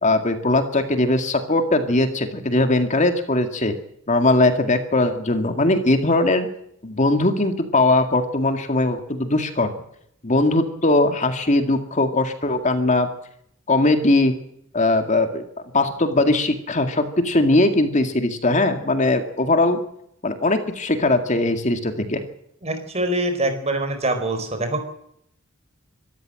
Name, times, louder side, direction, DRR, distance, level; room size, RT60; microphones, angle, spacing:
voice 1, 0.0-3.7 4.1-6.5 6.8-9.7 10.2-13.1 13.7-14.3 14.7-15.4 15.7-19.8 20.2-22.2, left 2 dB, 35° left, 7 dB, 2.1 m, -20 dB
voice 2, 22.6-24.8, right 2 dB, 35° right, 7 dB, 4.6 m, -24 dB
25.0 x 13.5 x 7.7 m, 0.72 s
head